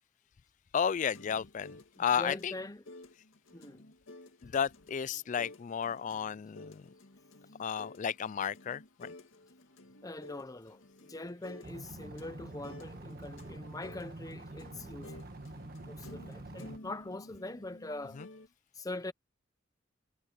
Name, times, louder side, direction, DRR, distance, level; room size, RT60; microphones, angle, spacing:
voice 1, 0.7-2.5 4.4-6.9 7.6-9.1 18.2-18.3, left 7 dB, 40° left, 0.3 m, -33 dB
sound 1, 1.0-18.5, left 2 dB, 75° left, 2.0 m, -53 dB
voice 2, 2.0-2.8 3.5-3.9 10.0-15.1 15.9-18.2 18.7-19.1, left 2 dB, 15° left, 0.8 m, -43 dB
sound 2, 11.6-16.8, right 2 dB, 50° right, 1.7 m, -46 dB
head